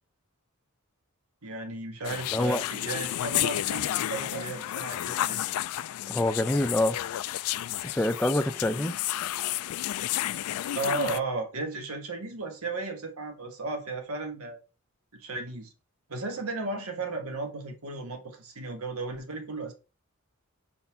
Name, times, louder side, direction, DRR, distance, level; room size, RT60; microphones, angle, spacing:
voice 1, 1.4-5.4 10.7-14.6 15.1-15.7 16.1-19.7, right 3 dB, 85° right, 1.5 m, -34 dB
sound 1, 2.0-11.2, left 13 dB, 85° left, 0.3 m, -31 dB
voice 2, 2.3-2.6 6.1-7.0 7.8-9.0, left 1 dB, 5° left, 0.4 m, -26 dB
4.4 x 4.1 x 5.7 m
head